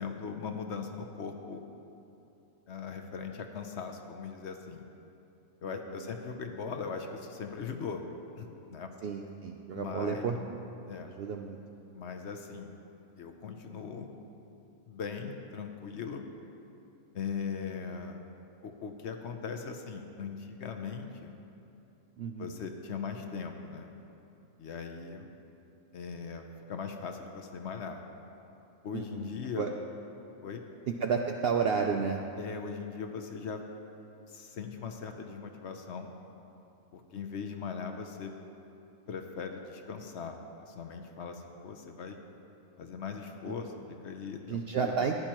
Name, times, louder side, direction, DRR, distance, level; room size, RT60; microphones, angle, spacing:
voice 1, 0.0-1.6 2.7-4.8 5.6-8.0 8.4-8.9 9.7-10.4 10.9-11.1 11.9-12.8 13.2-14.1 14.9-16.2 17.1-18.2 18.6-21.3 22.4-23.9 24.6-25.3 25.9-28.0 28.8-29.7 30.4-30.6 32.4-33.6 34.3-36.1 36.9-38.3 39.1-42.2 42.8-44.9, left 5 dB, 60° left, 4 dB, 0.9 m, -39 dB
voice 2, 9.0-10.6 11.1-11.6 22.2-22.6 28.9-29.3 29.6-29.7 30.9-32.2 43.5-43.6 44.5-45.2, right 6 dB, 65° right, 3 dB, 0.6 m, -31 dB
14.5 x 10.5 x 3.0 m, 2.8 s
omnidirectional pair, 1.5 m